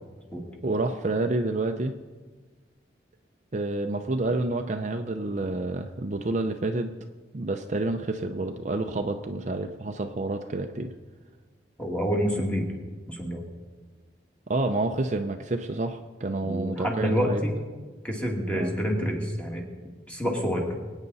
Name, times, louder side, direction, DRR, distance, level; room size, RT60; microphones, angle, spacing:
voice 1, 0.6-1.9 3.5-6.9 7.3-10.9 14.5-17.4 18.5-18.7, right 2 dB, 40° right, 6 dB, 0.6 m, -28 dB
voice 2, 11.8-12.7 13.1-13.4 16.4-17.5 18.0-19.6 20.1-20.7, equal, 5° left, 0 dB, 2.1 m, -27 dB
23.5 x 9.1 x 4.1 m, 1.4 s
head